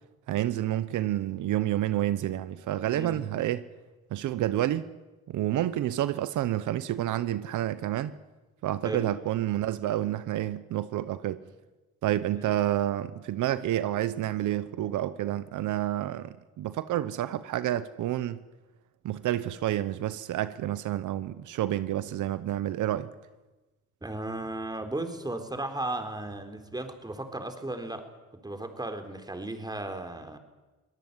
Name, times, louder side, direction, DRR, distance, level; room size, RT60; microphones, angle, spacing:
voice 1, 0.3-3.6 4.1-4.8 5.3-8.1 8.6-11.4 12.0-18.4 19.0-23.1, right 13 dB, 80° right, 1.1 m, -29 dB
voice 2, 2.9-3.4 8.8-9.1 24.0-28.1 28.4-30.4, right 2 dB, 15° right, 3.8 m, -35 dB
23.0 x 18.5 x 9.8 m
cardioid pair, 90°, 30 cm